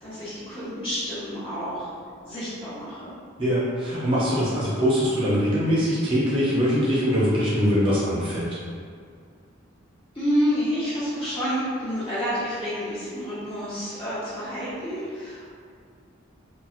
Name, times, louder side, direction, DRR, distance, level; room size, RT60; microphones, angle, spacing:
voice 1, 0.0-1.9 2.2-3.1 10.1-15.6, equal, 30° left, -11 dB, 1.1 m, -29 dB
voice 2, 3.4-8.5, equal, 25° right, -8 dB, 0.6 m, -22 dB
3.9 x 2.0 x 2.4 m, 2.2 s
head